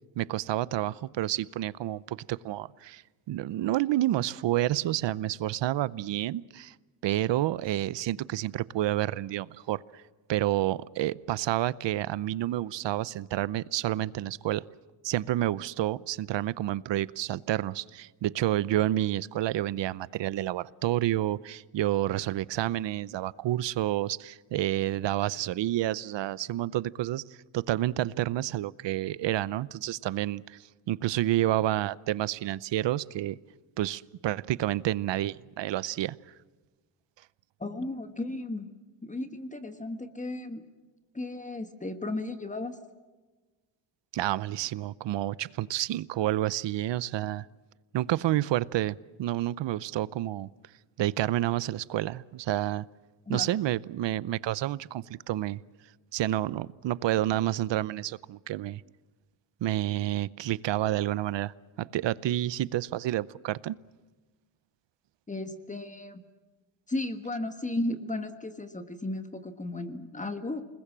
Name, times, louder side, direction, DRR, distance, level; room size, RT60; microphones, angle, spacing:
voice 1, 0.2-3.0 3.3-6.7 7.0-10.0 10.3-14.6 15.0-27.2 27.5-33.4 33.8-36.2 44.1-47.5 47.9-50.5 51.0-52.9 53.3-55.6 56.1-58.8 59.6-63.8, right 14 dB, 65° right, 20 dB, 0.8 m, -29 dB
voice 2, 37.6-38.7 39.0-40.6 41.1-42.8 53.3-53.5 65.3-66.2 66.9-70.6, left 2 dB, 15° left, 8 dB, 1.5 m, -34 dB
28.5 x 20.5 x 7.4 m, 1.2 s
cardioid pair, 135°, 47 cm